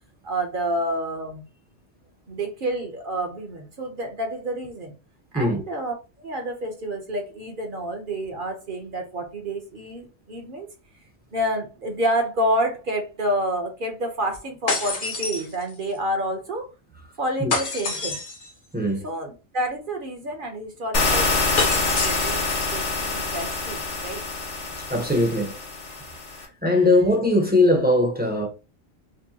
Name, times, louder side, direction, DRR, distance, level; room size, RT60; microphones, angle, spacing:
voice 1, 0.2-1.4 2.3-4.9 5.3-10.7 11.3-16.7 17.2-18.2 19.0-24.2 26.3-26.4, right 1 dB, 45° right, 1.1 m, -29 dB
sound 1, 14.7-16.0 17.5-18.5 21.6-22.7, left 3 dB, 45° left, 1.0 m, -27 dB
voice 2, 18.7-19.0 24.9-25.6 26.6-28.5, left 1 dB, 10° right, 0.8 m, -20 dB
sound 2, 20.9-26.5, left 3 dB, 75° left, 1.2 m, -26 dB
5.2 x 2.2 x 2.8 m
omnidirectional pair, 1.2 m